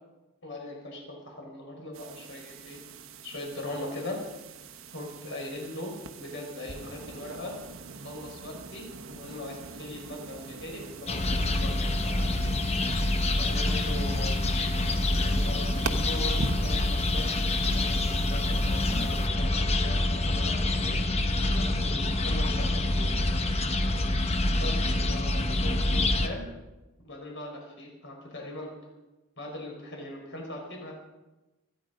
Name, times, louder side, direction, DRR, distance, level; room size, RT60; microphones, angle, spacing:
voice 1, 0.4-2.8 3.2-4.2 4.9-5.9 6.2-7.5 8.0-12.2 12.8-13.0 13.3-14.4 14.7-17.3 17.7-21.0 21.5-23.1 23.7-23.9 24.6-26.5 27.0-28.7 29.4-31.0, left 1 dB, 55° left, 0 dB, 5.0 m, -40 dB
sound 1, 1.9-19.3, right 3 dB, 65° right, 1.2 m, -41 dB
sound 2, 11.1-26.3, left 2 dB, 30° left, 1.0 m, -26 dB
27.0 x 10.0 x 5.2 m, 1.1 s
head